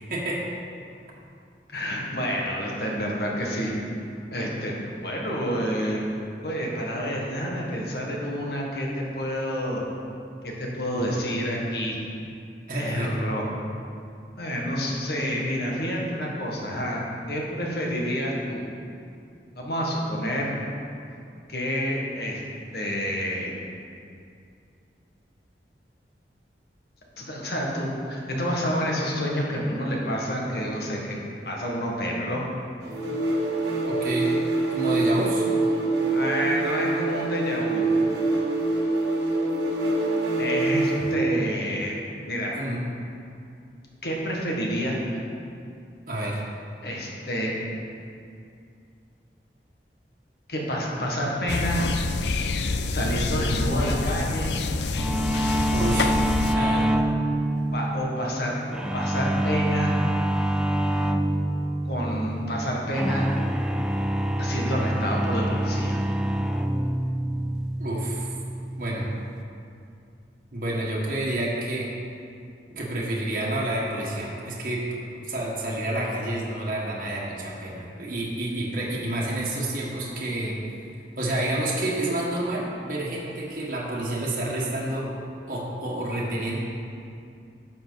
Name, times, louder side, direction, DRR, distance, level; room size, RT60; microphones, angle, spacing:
voice 1, 0.1-0.5 10.9-11.2 12.7-13.2 33.8-34.3 34.7-35.5 42.5-42.8 46.1-46.4 55.7-56.1 56.4-56.9 67.8-68.3 68.8-69.1 70.5-71.9 72.7-74.8 75.2-80.6 81.2-85.1 85.5-86.6, right 1 dB, 50° right, -5 dB, 1.4 m, -29 dB
voice 2, 1.7-3.7 4.3-4.7 5.0-6.0 6.4-9.8 10.4-12.0 12.7-13.5 14.4-17.0 17.3-18.7 19.5-20.5 21.5-22.4 22.7-23.5 27.2-31.2 31.4-32.4 36.1-37.9 40.4-42.0 42.3-42.5 44.0-45.2 46.8-47.5 50.5-51.8 52.9-54.5 57.7-59.9 61.8-63.3 64.4-66.0, equal, 60° left, -2 dB, 1.7 m, -28 dB
sound 1, 32.8-41.2, right 2 dB, 80° right, 1.6 m, -25 dB
sound 2, 51.5-56.5, left 3 dB, 80° left, 0.5 m, -27 dB
sound 3, 55.0-69.4, right 1 dB, 5° right, 0.3 m, -26 dB
11.5 x 7.1 x 4.0 m, 2.5 s
head